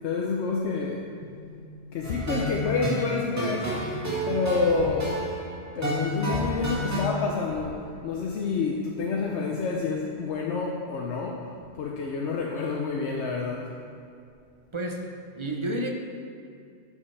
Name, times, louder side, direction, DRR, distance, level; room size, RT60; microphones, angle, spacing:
voice 1, 0.0-1.7 1.9-5.2 5.8-11.4 11.7-13.7, left 4 dB, 85° left, -1 dB, 1.0 m, -28 dB
sound 1, 2.0-7.0, right 1 dB, 15° right, 1.9 m, -31 dB
voice 2, 14.7-15.9, right 1 dB, 30° right, 2 dB, 0.7 m, -31 dB
11.0 x 6.8 x 3.3 m, 2.3 s
omnidirectional pair, 1.1 m